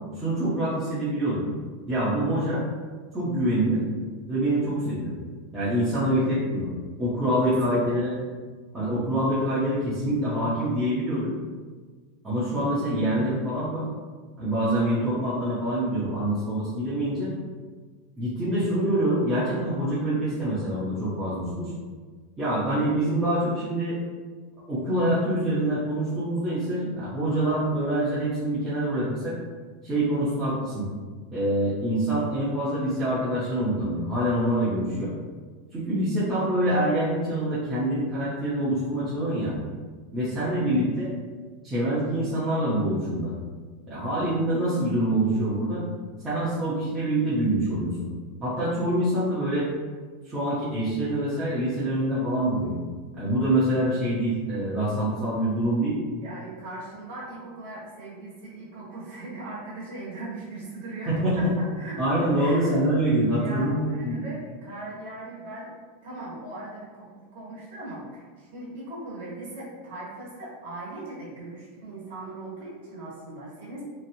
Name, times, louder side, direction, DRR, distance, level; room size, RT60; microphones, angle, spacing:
voice 1, 0.2-1.5 1.9-2.6 3.1-3.8 4.3-5.2 5.5-6.7 7.0-8.2 8.7-11.3 12.2-13.8 14.4-17.3 18.2-21.7 22.4-24.0 24.7-29.4 29.8-30.9 31.3-35.1 35.7-39.6 40.1-41.1 41.6-43.3 43.9-45.8 46.2-48.1 48.4-49.7 50.3-52.8 53.1-56.0 61.1-61.5 62.0-64.2, right 1 dB, 15° right, -12 dB, 0.7 m, -25 dB
voice 2, 7.4-8.0 56.2-65.7 66.0-73.8, right 2 dB, 70° right, -7 dB, 1.4 m, -39 dB
2.9 x 2.5 x 2.7 m, 1.5 s
supercardioid pair, 160°, 0 cm